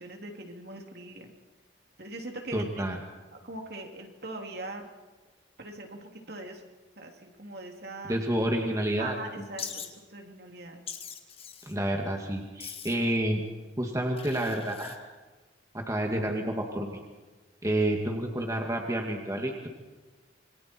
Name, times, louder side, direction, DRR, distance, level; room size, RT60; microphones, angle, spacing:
voice 1, 0.0-1.3 2.0-2.8 3.3-4.9 5.6-6.6 7.0-8.2 9.0-10.8, right 2 dB, 55° right, 2 dB, 3.1 m, -41 dB
voice 2, 2.5-3.0 8.1-9.1 11.6-13.4 13.8-15.0 15.7-17.0 17.6-19.7, right 1 dB, 15° right, 1 dB, 2.2 m, -29 dB
Wild animals, 9.6-9.9 10.9-11.7 12.6-13.1 14.2-15.0, left 7 dB, 30° left, 1.8 m, -41 dB
27.5 x 24.0 x 4.6 m, 1.3 s
head